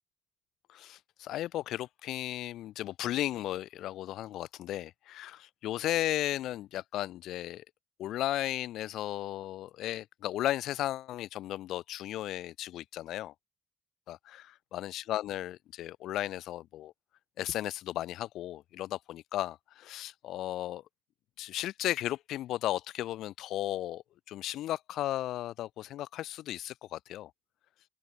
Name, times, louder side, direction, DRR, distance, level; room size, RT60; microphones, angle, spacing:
voice 1, 0.7-7.6 8.0-13.3 14.1-16.9 17.4-20.8 21.4-27.3, left 13 dB, 85° left, 0.3 m, -35 dB
open air
cardioid pair, 90°, 0 cm